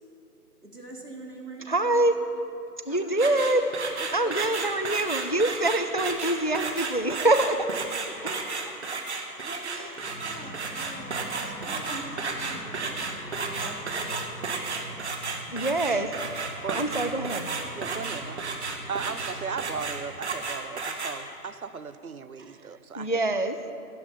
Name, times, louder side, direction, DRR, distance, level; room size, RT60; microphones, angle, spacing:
voice 1, 0.6-2.0 2.9-3.4 4.0-4.6 8.0-8.7 9.1-14.9, right 1 dB, 80° right, 0 dB, 3.2 m, -44 dB
voice 2, 1.7-2.1 2.9-3.7 4.1-7.7 8.2-8.3 15.5-16.1 16.7-17.5 23.0-23.6, right 2 dB, 35° left, 9 dB, 0.4 m, -25 dB
sound 1, 3.1-21.2, right 4 dB, 45° right, 1.8 m, -32 dB
sound 2, 10.0-19.9, right 1 dB, 5° right, 2.3 m, -44 dB
voice 3, 17.7-18.4 18.9-23.4, right 5 dB, 65° right, 14 dB, 1.0 m, -36 dB
16.0 x 15.5 x 5.2 m, 2.7 s
figure-of-eight pair, 140°, 47 cm